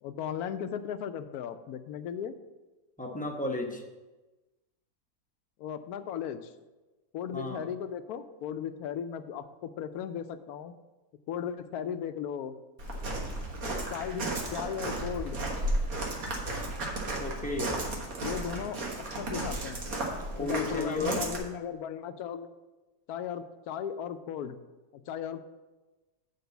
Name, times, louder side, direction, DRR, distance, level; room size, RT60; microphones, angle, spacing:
voice 1, 0.0-2.4 5.6-6.5 7.1-10.7 11.3-12.6 13.9-15.4 18.2-18.8 19.1-19.9 20.4-22.5 23.1-24.6 24.9-25.4, left 8 dB, 75° left, 10 dB, 1.0 m, -36 dB
voice 2, 3.0-3.8 7.3-7.6 17.2-17.7 20.3-21.2, left 2 dB, 10° left, 0 dB, 0.6 m, -33 dB
Walk footsteps, 12.8-21.4, right 1 dB, 60° right, 1.9 m, -34 dB
8.0 x 4.6 x 6.9 m, 1.1 s
omnidirectional pair, 1.7 m